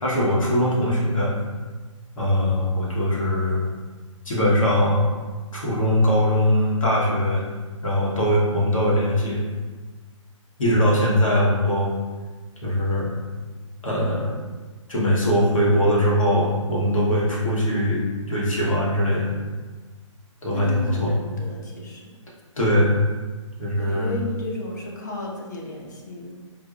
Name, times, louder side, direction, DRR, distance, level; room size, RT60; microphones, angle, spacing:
voice 1, 0.0-1.4 2.1-3.7 4.2-5.0 5.5-7.4 7.8-9.4 10.6-11.9 12.6-13.2 13.8-14.4 14.9-19.3 20.4-21.1 22.6-22.9 23.6-24.2, equal, 80° left, -5 dB, 1.2 m, -21 dB
voice 2, 20.5-22.1 23.8-26.4, left 2 dB, 35° left, -2 dB, 0.5 m, -34 dB
4.4 x 2.1 x 2.4 m, 1.3 s
hypercardioid pair, 170°, 17 cm